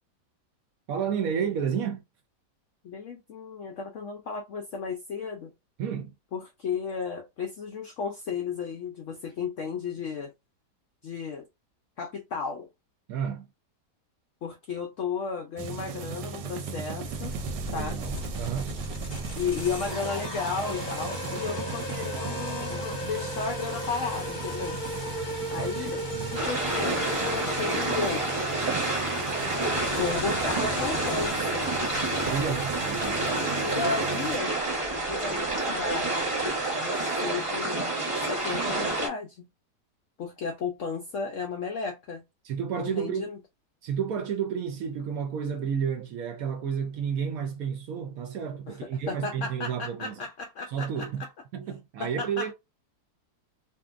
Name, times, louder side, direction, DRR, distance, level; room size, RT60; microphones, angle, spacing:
voice 1, 0.9-2.0 5.8-6.1 13.1-13.5 17.7-18.8 25.6-26.4 32.2-33.2 42.4-43.3 43.8-50.1 50.7-51.2 51.5-52.5, right 7 dB, 70° right, 0.9 m, -31 dB
voice 2, 2.8-5.5 6.3-10.3 11.0-11.5 12.0-12.7 14.4-17.3 17.7-18.0 19.4-24.8 25.5-26.0 26.3-28.6 29.9-31.8 33.6-34.6 35.1-36.2 36.7-37.9 38.3-39.5 40.2-42.2 42.8-43.4 48.7-51.3 52.0-52.5, left 5 dB, 75° left, 0.7 m, -34 dB
sound 1, 15.6-34.4, right 6 dB, 90° right, 1.2 m, -38 dB
sound 2, 17.0-31.3, left 1 dB, 40° left, 0.8 m, -36 dB
sound 3, 26.3-39.1, right 2 dB, 20° right, 1.0 m, -28 dB
2.7 x 2.5 x 2.4 m
omnidirectional pair, 1.8 m